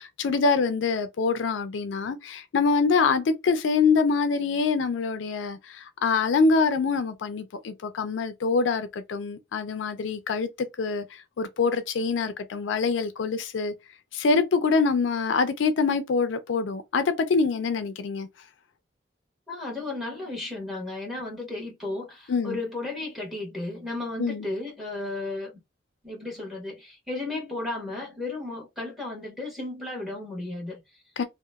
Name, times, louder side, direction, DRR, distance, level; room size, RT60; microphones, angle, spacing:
voice 1, 0.0-13.7 14.1-18.3 22.3-22.6 24.2-24.5 31.2-31.3, left 4 dB, 70° left, 0.4 m, -25 dB
voice 2, 19.5-25.5 26.0-31.0, left 2 dB, ahead, 1.2 m, -34 dB
2.9 x 2.0 x 2.2 m
head